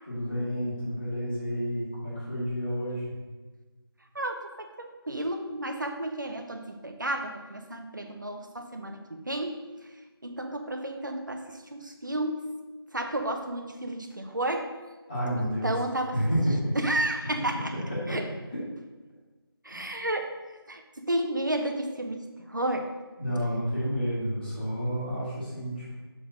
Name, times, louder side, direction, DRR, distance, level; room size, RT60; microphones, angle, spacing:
voice 1, 0.1-3.1 15.1-15.7 16.1-16.7 17.9-18.2 18.5-18.6 19.7-19.8 23.2-25.9, equal, 15° left, -15 dB, 1.8 m, -30 dB
voice 2, 4.1-9.6 10.2-12.4 12.9-14.7 15.4-16.1 16.8-17.7 18.1-18.2 19.6-20.3 20.7-22.2 22.5-22.9, right 1 dB, 50° right, 4 dB, 0.9 m, -32 dB
6.9 x 3.7 x 6.3 m, 1.3 s
figure-of-eight pair, 180°, 13 cm